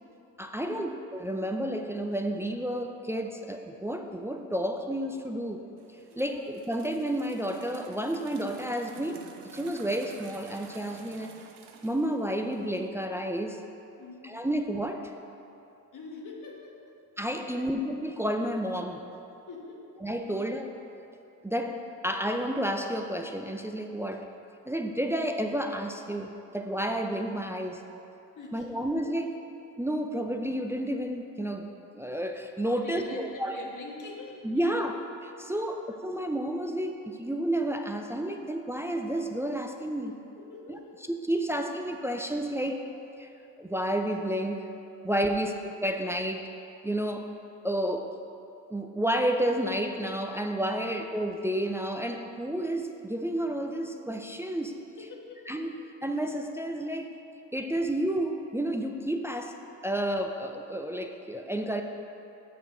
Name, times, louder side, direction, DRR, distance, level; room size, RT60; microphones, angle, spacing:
voice 1, 0.4-5.6 6.2-11.3 11.8-13.6 14.2-15.1 17.2-19.1 20.0-20.7 21.4-24.3 24.7-27.8 28.5-29.4 29.8-33.6 34.4-34.9 35.2-40.2 40.7-40.8 41.1-42.8 43.2-43.3 43.6-44.7 45.0-46.5 46.8-47.3 47.6-48.1 48.7-54.8 55.5-55.8 56.0-57.1 57.5-59.6 59.8-61.8, right 1 dB, 5° right, 4 dB, 0.4 m, -31 dB
sound 1, 5.8-12.9, right 6 dB, 75° right, 0.9 m, -50 dB
voice 2, 6.1-6.4 14.0-14.4 15.9-17.0 17.4-17.7 19.5-19.9 20.3-20.5 28.4-28.9 32.7-34.9 40.4-41.1 50.7-51.0 55.0-55.5, left 3 dB, 50° left, -1 dB, 1.7 m, -45 dB
6.9 x 6.2 x 6.6 m, 2.8 s
cardioid pair, 85°, 41 cm